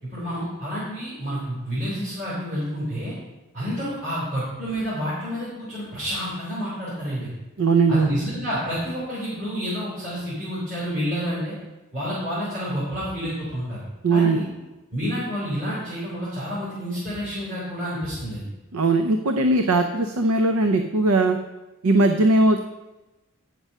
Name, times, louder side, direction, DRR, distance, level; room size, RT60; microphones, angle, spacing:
voice 1, 0.0-3.2 3.5-7.3 7.9-11.5 11.9-13.8 14.1-14.5 14.9-18.5, equal, 45° right, -9 dB, 3.5 m, -29 dB
voice 2, 7.6-8.1 14.0-14.4 18.7-21.4 21.8-22.6, right 2 dB, 85° right, 6 dB, 0.6 m, -19 dB
9.3 x 6.0 x 5.5 m, 1.1 s
head